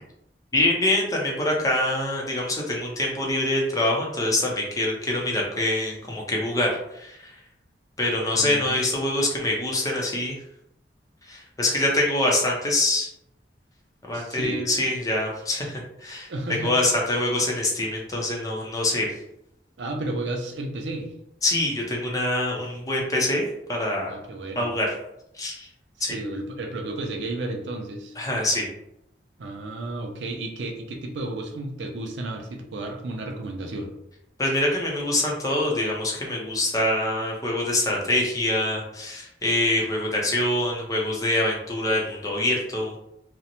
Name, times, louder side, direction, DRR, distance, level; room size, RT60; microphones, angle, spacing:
voice 1, 0.5-7.4 8.0-10.4 11.2-13.1 14.1-19.2 21.4-24.2 24.6-24.9 25.3-25.7 26.0-26.2 28.2-28.7 34.4-43.0, left 1 dB, 20° left, -2 dB, 0.5 m, -25 dB
voice 2, 8.4-8.8 14.1-14.7 16.3-16.7 19.8-21.1 24.1-24.7 26.0-28.1 29.4-33.9, right 2 dB, 90° right, 3 dB, 0.5 m, -32 dB
2.5 x 2.0 x 2.8 m, 0.79 s
head